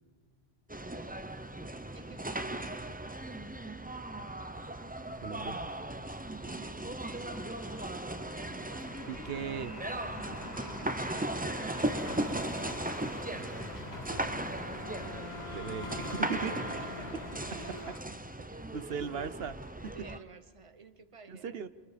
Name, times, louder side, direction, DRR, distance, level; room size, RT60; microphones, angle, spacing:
sound 1, 0.7-20.2, right 1 dB, 10° right, 0.5 m, -37 dB
voice 1, 0.8-1.3 1.9-3.3 6.3-8.8 10.1-13.6 16.3-18.0 18.4-18.6 19.9-21.7, right 4 dB, 30° right, 10 dB, 1.0 m, -54 dB
voice 2, 5.2-5.6 9.1-9.7 15.5-16.5 18.7-19.6 19.8-19.9 21.3-21.7, right 7 dB, 65° right, 13 dB, 1.1 m, -37 dB
sound 2, 7.1-18.0, left 2 dB, 65° left, 2.2 m, -46 dB
Wind instrument woodwind instrument, 14.1-18.3, left 2 dB, 25° left, 2.2 m, -45 dB
29.0 x 27.5 x 5.1 m, 1.5 s
omnidirectional pair, 1.1 m